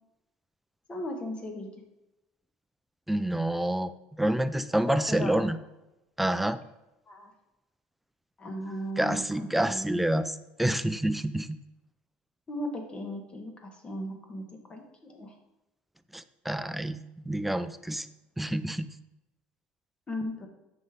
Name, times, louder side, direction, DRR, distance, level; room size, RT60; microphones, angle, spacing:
voice 1, 0.9-1.7 4.9-5.5 7.1-7.3 8.4-10.0 12.5-15.3 20.1-20.5, equal, 25° left, 4 dB, 1.3 m, -37 dB
voice 2, 3.1-3.9 4.2-5.6 6.2-6.6 9.0-11.5 16.1-18.1 18.4-18.9, right 1 dB, 5° right, 13 dB, 0.4 m, -28 dB
7.8 x 5.3 x 3.5 m, 0.95 s
supercardioid pair, 100°, 4 cm